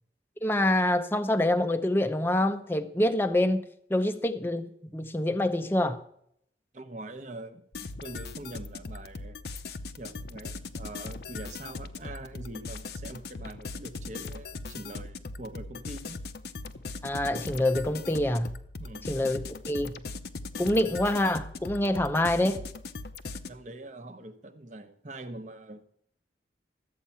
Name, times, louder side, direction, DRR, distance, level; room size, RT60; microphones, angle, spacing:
voice 1, 0.4-6.0 17.0-18.6 19.1-19.9 20.6-22.6, left 1 dB, 10° left, 0.6 m, -26 dB
voice 2, 6.7-7.6 8.0-9.4 10.0-16.2 18.8-19.1 23.5-25.8, right 1 dB, 40° right, 1.0 m, -43 dB
sound 1, 7.7-23.5, left 3 dB, 60° left, 0.8 m, -40 dB
13.5 x 8.4 x 5.7 m
head